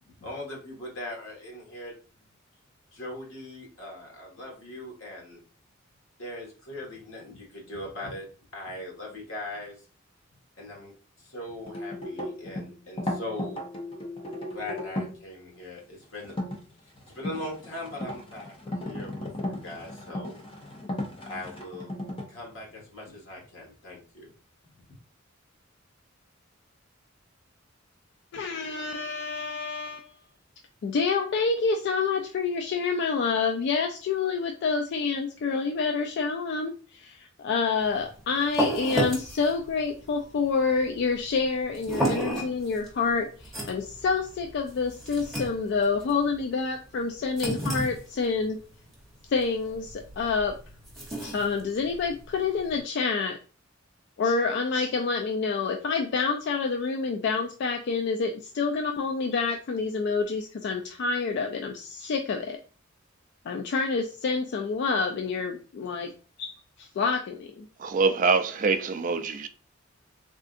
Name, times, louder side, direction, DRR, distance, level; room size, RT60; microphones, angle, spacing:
voice 1, 0.1-2.0 2.9-5.4 6.2-8.3 8.5-9.8 10.6-13.6 14.5-16.3 17.1-18.5 18.8-20.4 21.2-21.9 22.3-24.3, left 1 dB, 90° left, 1.4 m, -40 dB
sound 1, 11.7-15.2 16.2-16.6 17.1-22.2, left 1 dB, 30° left, 0.6 m, -35 dB
voice 2, 28.3-30.1 30.8-48.6 49.3-50.6 51.2-53.4 54.2-62.6 63.5-66.1 66.4-67.7, left 4 dB, 60° left, 0.3 m, -28 dB
sound 2, 37.8-52.8, right 1 dB, ahead, 1.0 m, -34 dB
voice 3, 67.8-69.5, right 4 dB, 40° right, 0.3 m, -24 dB
3.6 x 2.4 x 2.5 m
head